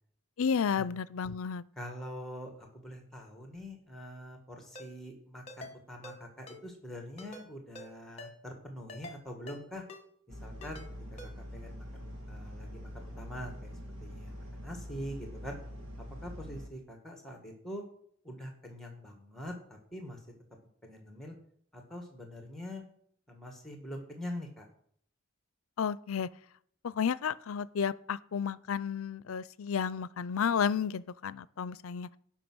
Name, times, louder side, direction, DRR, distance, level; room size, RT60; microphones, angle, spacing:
voice 1, 0.4-1.6 25.8-26.3 26.8-32.1, left 7 dB, 85° left, 19 dB, 0.5 m, -32 dB
voice 2, 1.8-9.8 10.4-10.8 11.1-11.2 11.5-13.7 14.0-15.6 16.2-17.8 18.2-20.2 20.8-21.4 21.7-22.8 23.3-24.7, equal, ahead, 3 dB, 1.7 m, -44 dB
Ringtone, 4.8-4.9 5.5-5.7 6.0-6.2 6.5-6.6 7.2-7.5 7.8-7.9 8.2-8.3 8.9-9.2 9.5-9.6 9.9-10.0 10.6-10.9 11.2-11.3, left 1 dB, 30° left, 1.3 m, -46 dB
sound 1, 10.3-16.7, equal, 70° right, 2.1 m, -44 dB
15.5 x 5.8 x 6.2 m, 0.65 s
head